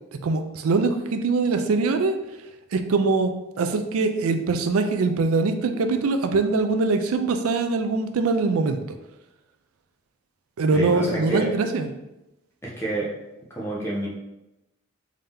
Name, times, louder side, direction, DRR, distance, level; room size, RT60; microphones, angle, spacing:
voice 1, 0.1-2.1 2.7-3.3 3.6-8.8 10.6-11.9, right 3 dB, 90° right, 7 dB, 0.4 m, -23 dB
voice 2, 10.7-11.5 12.6-13.1 13.5-14.1, right 2 dB, 10° left, -5 dB, 0.6 m, -28 dB
3.6 x 2.8 x 3.4 m, 0.93 s
head